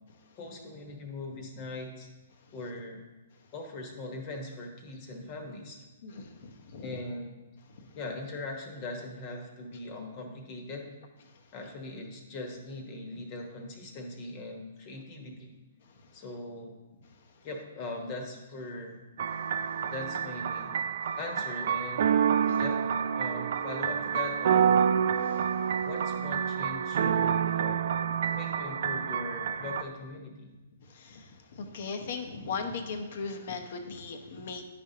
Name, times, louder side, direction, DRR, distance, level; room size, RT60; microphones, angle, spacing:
voice 1, 0.4-2.1 2.5-3.0 3.5-5.9 6.8-7.3 7.9-10.9 11.5-15.5 16.1-16.8 17.4-19.0 19.8-20.8 21.2-22.1 22.5-24.9 25.8-27.9 28.3-30.5, left 2 dB, 35° left, 3 dB, 1.2 m, -40 dB
voice 2, 6.0-7.0 22.5-22.6 30.9-34.6, left 4 dB, 55° left, 5 dB, 0.8 m, -38 dB
sound 1, 19.2-29.8, right 8 dB, 60° right, 0.4 m, -28 dB
9.6 x 5.1 x 2.8 m, 1.1 s
hypercardioid pair, 135°, 0 cm